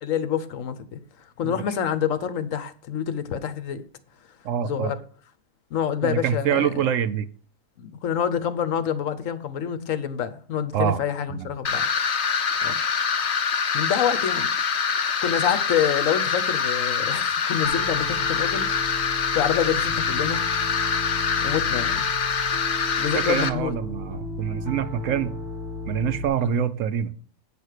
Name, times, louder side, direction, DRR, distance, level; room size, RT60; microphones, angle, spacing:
voice 1, 0.0-1.0 1.4-3.8 4.6-5.0 5.7-6.9 7.8-11.9 12.3-12.8 13.7-14.5 15.2-18.7 19.3-20.4 21.4-22.1 23.0-23.8 26.4-26.5, left 8 dB, 80° left, 1.2 m, -27 dB
voice 2, 4.4-4.9 6.0-7.3 10.7-11.0 11.3-11.5 23.1-25.3 25.8-27.1, right 8 dB, 75° right, 1.1 m, -25 dB
sound 1, 11.6-23.5, left 6 dB, 60° left, 1.0 m, -25 dB
Piano, 17.6-26.3, left 1 dB, 40° right, 5.1 m, -35 dB
8.9 x 5.3 x 6.5 m
omnidirectional pair, 1.4 m